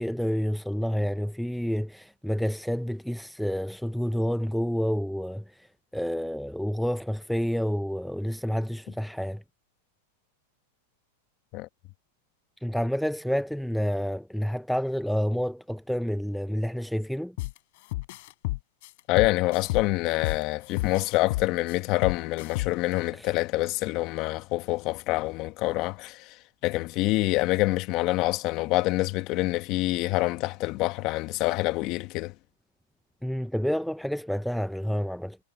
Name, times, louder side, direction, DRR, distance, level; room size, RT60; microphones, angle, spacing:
voice 1, 0.0-5.4 5.9-9.4 12.6-17.4 23.1-23.3 33.2-35.4, equal, ahead, 0.5 m, -29 dB
sound 1, 17.4-17.6 17.9-20.4 20.8-22.9, left 21 dB, 60° left, 3.9 m, -30 dB
voice 2, 19.1-26.4 26.6-32.3, left 19 dB, 40° left, 1.4 m, -26 dB
hypercardioid pair, 135°, 0 cm